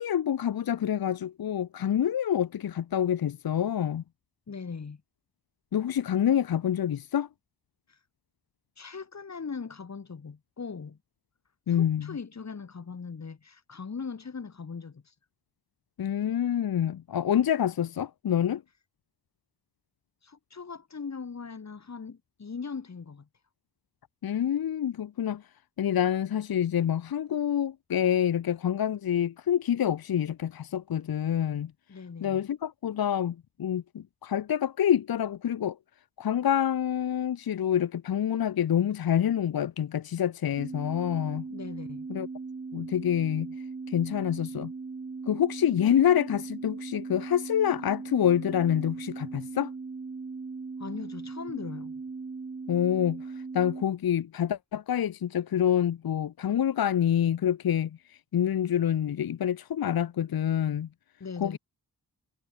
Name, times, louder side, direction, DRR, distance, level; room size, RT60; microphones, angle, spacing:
voice 1, 0.0-4.0 5.7-7.3 11.7-12.1 16.0-18.6 24.2-25.4 25.8-31.7 32.2-35.8 36.2-41.4 42.1-42.3 42.7-43.5 43.9-44.7 45.3-49.7 52.7-53.2 53.5-57.9 58.3-60.9 61.4-61.6, left 9 dB, 70° left, 0.8 m, -27 dB
voice 2, 4.5-5.0 7.9-8.0 8.8-11.0 11.7-15.1 20.2-23.3 31.9-32.4 41.5-42.1 50.8-52.0 61.2-61.6, left 5 dB, 45° left, 2.7 m, -40 dB
sound 1, 40.6-53.8, right 4 dB, 25° right, 1.2 m, -39 dB
wide cardioid pair, 145°, 38 cm